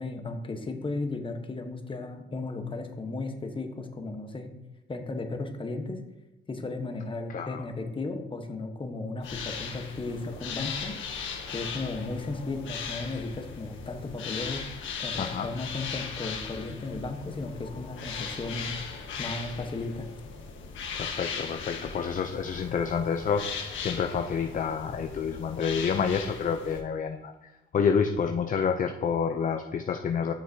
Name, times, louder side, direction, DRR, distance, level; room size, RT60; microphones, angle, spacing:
voice 1, 0.0-4.5 4.9-6.0 6.5-10.9 11.5-14.6 15.0-18.7 19.2-20.1, left 3 dB, 25° left, 5 dB, 1.1 m, -35 dB
voice 2, 7.3-7.6 15.2-15.5 20.9-27.3 27.7-30.3, left 6 dB, 40° left, 6 dB, 0.6 m, -28 dB
sound 1, 9.2-26.8, left 6 dB, 75° left, 1.4 m, -38 dB
11.5 x 6.4 x 2.8 m, 1.0 s
cardioid pair, 90°, 20 cm